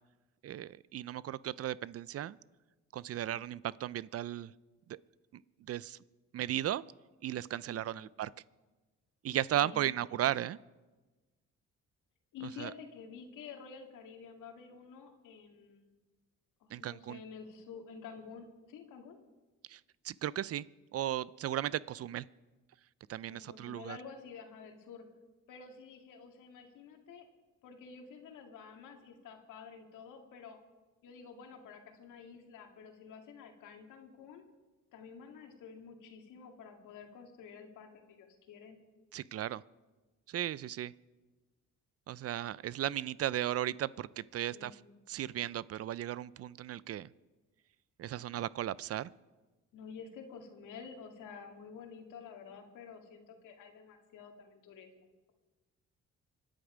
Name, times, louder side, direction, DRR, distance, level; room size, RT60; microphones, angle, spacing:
voice 1, 0.4-2.4 2.9-4.5 4.9-5.0 5.3-5.4 5.7-6.0 6.3-6.8 7.2-8.3 9.2-10.6 12.6-12.7 16.7-17.2 19.7-19.8 20.0-20.6 20.9-22.2 23.1-24.0 39.1-39.6 40.3-40.9 42.1-44.7 45.1-47.1 48.0-49.1, right 12 dB, 50° right, 20 dB, 0.5 m, -35 dB
voice 2, 7.7-8.0 9.6-10.1 12.3-15.9 16.6-19.2 23.3-25.1 25.5-27.3 27.6-30.6 31.0-34.5 34.9-38.8 44.5-44.9 49.7-55.3, left 6 dB, 90° left, 3 dB, 2.2 m, -50 dB
25.5 x 10.0 x 5.0 m, 1.2 s
cardioid pair, 90°, 30 cm